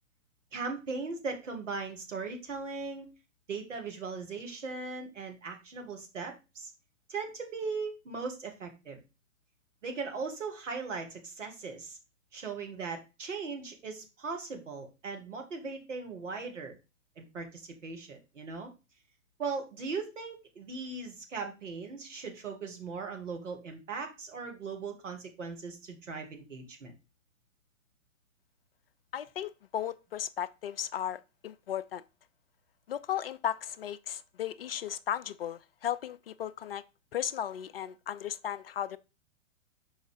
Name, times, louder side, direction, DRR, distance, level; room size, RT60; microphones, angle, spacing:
voice 1, 0.5-3.1 3.5-6.7 7.1-9.0 9.8-12.0 12.3-16.8 17.2-18.7 19.4-26.9, right 4 dB, 65° right, 1.9 m, -39 dB
voice 2, 29.1-32.0 32.9-36.8 37.1-39.0, left 10 dB, 50° left, 0.5 m, -35 dB
5.5 x 4.4 x 4.9 m
figure-of-eight pair, 110°, 39 cm